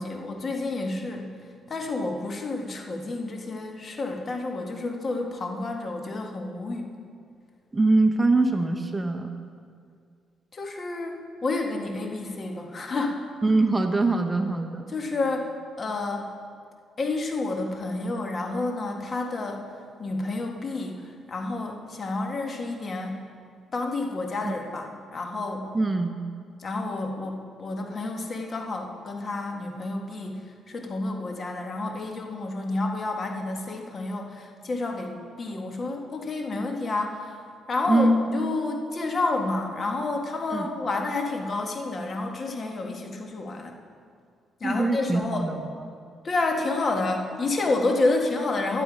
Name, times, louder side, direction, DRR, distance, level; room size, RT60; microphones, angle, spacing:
voice 1, 0.0-1.3 1.7-6.9 10.5-13.2 14.9-15.5 15.8-16.3 17.0-19.6 20.0-23.2 23.7-25.7 26.6-37.4 37.7-43.7 44.6-45.5 46.2-48.8, left 2 dB, 40° left, 3 dB, 1.6 m, -29 dB
voice 2, 7.7-9.3 13.4-14.8 24.4-24.6 25.7-26.1 37.9-38.2 40.5-40.7 44.6-45.6, right 2 dB, 20° right, 5 dB, 0.9 m, -23 dB
12.5 x 11.0 x 5.1 m, 2.2 s
cardioid pair, 90°, 0 cm